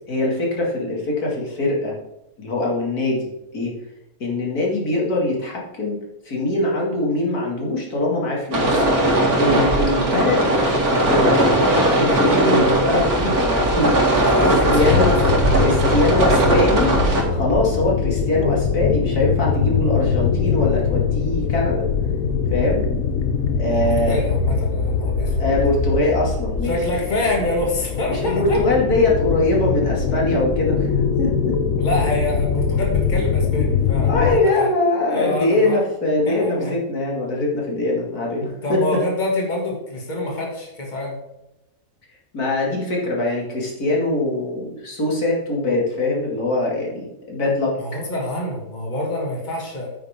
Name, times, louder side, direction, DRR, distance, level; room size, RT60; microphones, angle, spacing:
voice 1, 0.1-1.9 2.4-3.7 4.2-6.0 6.2-8.9 9.4-10.5 10.9-15.1 15.6-16.9 17.3-21.9 22.5-22.8 23.6-24.2 25.4-26.7 28.1-30.9 31.2-31.6 34.1-38.8 42.3-47.8, left 2 dB, 80° left, -3 dB, 3.0 m, -22 dB
sound 1, 8.5-17.2, right 1 dB, 75° right, 2.5 m, -18 dB
voice 2, 14.1-15.2 23.7-25.3 26.6-28.6 31.8-34.7 35.1-35.8 36.3-36.7 38.6-41.2 47.8-49.9, left 1 dB, 30° left, -1 dB, 2.4 m, -26 dB
sound 2, 14.7-34.4, left 6 dB, 65° left, 1.3 m, -22 dB
9.4 x 9.1 x 3.7 m, 0.89 s
omnidirectional pair, 1.6 m